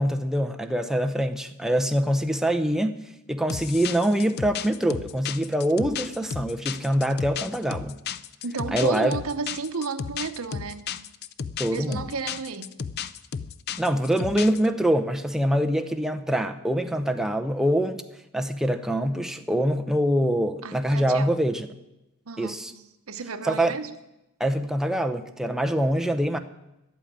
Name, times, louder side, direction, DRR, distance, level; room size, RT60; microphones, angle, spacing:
voice 1, 0.0-3.0 3.3-8.0 8.7-9.2 11.6-12.0 13.8-18.0 18.3-21.7 22.4-22.7 23.4-23.8 24.4-26.4, equal, ahead, 5 dB, 0.7 m, -24 dB
sound 1, 3.5-14.7, left 7 dB, 50° left, 0.4 m, -34 dB
voice 2, 8.4-10.9 11.7-12.7 20.6-21.3 22.3-22.7 23.1-23.9, right 4 dB, 75° right, 9 dB, 0.9 m, -32 dB
11.5 x 8.7 x 8.7 m, 0.93 s
head